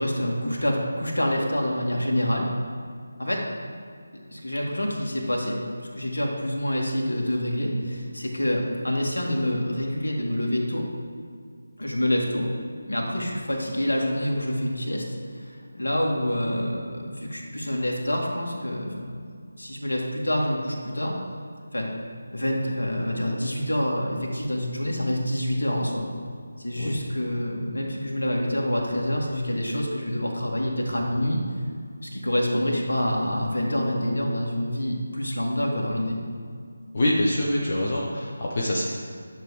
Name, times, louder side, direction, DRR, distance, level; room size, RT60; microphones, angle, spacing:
voice 1, 0.0-2.5 3.2-3.4 4.3-10.9 11.8-12.5 12.9-15.1 15.3-19.3 19.6-21.2 21.7-21.9 22.3-26.1 26.6-31.4 32.0-36.2, equal, 65° left, -1 dB, 2.2 m, -27 dB
voice 2, 36.9-38.8, left 1 dB, 35° left, -4 dB, 1.1 m, -25 dB
10.5 x 7.2 x 5.0 m, 2.2 s
figure-of-eight pair, 160°, 0 cm